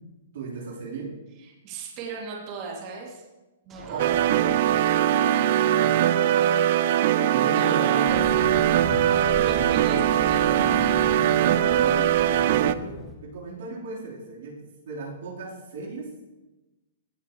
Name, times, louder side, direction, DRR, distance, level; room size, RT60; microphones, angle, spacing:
voice 1, 0.3-1.1 3.8-4.5 5.4-6.6 7.3-8.6 10.4-10.8 11.4-13.0 13.2-14.6 14.8-16.3, right 4 dB, 70° right, -4 dB, 4.0 m, -36 dB
voice 2, 1.4-3.2 3.7-4.2 7.4-8.7 9.3-10.8, right 4 dB, 35° right, -3 dB, 2.6 m, -37 dB
sound 1, 3.7-7.4, right 3 dB, 20° right, 1.2 m, -48 dB
sound 2, 4.0-12.7, right 11 dB, 50° right, 0.4 m, -21 dB
sound 3, 8.0-13.1, left 1 dB, 15° left, 1.8 m, -37 dB
17.5 x 6.7 x 3.2 m, 1.1 s
hypercardioid pair, 150°, 0 cm